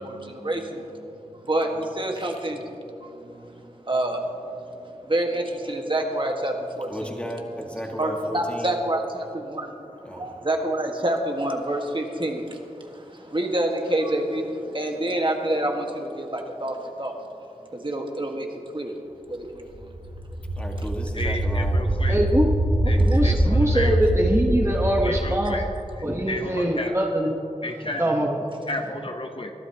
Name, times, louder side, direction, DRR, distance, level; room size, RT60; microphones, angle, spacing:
voice 1, 0.0-7.1 8.0-17.2 17.7-18.9 19.3-19.9 23.1-23.2, right 1 dB, 40° right, 2 dB, 1.6 m, -28 dB
voice 2, 6.9-8.8 10.0-10.3 20.6-22.0, equal, 10° left, 1 dB, 1.7 m, -34 dB
sound 1, 19.8-26.6, right 1 dB, 70° right, 1.1 m, -24 dB
voice 3, 21.1-22.2 22.9-24.0 25.0-25.6 26.3-27.0 27.6-28.1 28.7-29.5, left 2 dB, 45° left, 5 dB, 0.9 m, -33 dB
voice 4, 22.1-22.5 22.8-25.7 26.0-27.4 28.0-28.4, equal, 20° right, 0 dB, 1.2 m, -23 dB
23.5 x 12.0 x 2.9 m, 2.9 s
wide cardioid pair, 60°, 13 cm